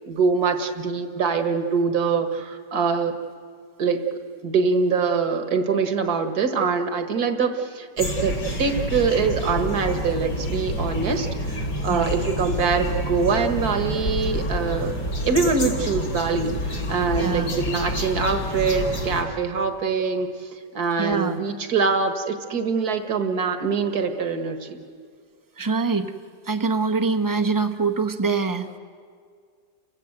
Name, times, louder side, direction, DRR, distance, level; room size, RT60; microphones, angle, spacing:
voice 1, 0.0-3.2 3.8-8.3 8.6-14.9 15.2-24.8, right 5 dB, 65° right, 7 dB, 2.0 m, -24 dB
sound 1, 8.0-19.2, equal, 70° left, 3.3 m, -28 dB
voice 2, 17.2-17.6 21.0-21.4 25.6-26.1 26.4-28.8, right 4 dB, 15° right, 6 dB, 0.7 m, -24 dB
30.0 x 16.5 x 7.9 m, 2.1 s
omnidirectional pair, 1.8 m